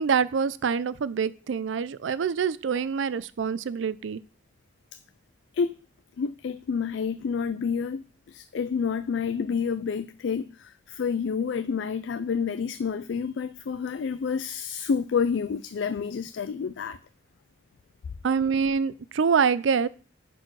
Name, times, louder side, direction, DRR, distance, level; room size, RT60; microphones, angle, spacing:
voice 1, 0.0-4.2 18.2-19.9, right 6 dB, 85° right, 0.4 m, -25 dB
voice 2, 6.2-17.0, left 6 dB, 75° left, 0.4 m, -29 dB
10.5 x 4.3 x 4.7 m
head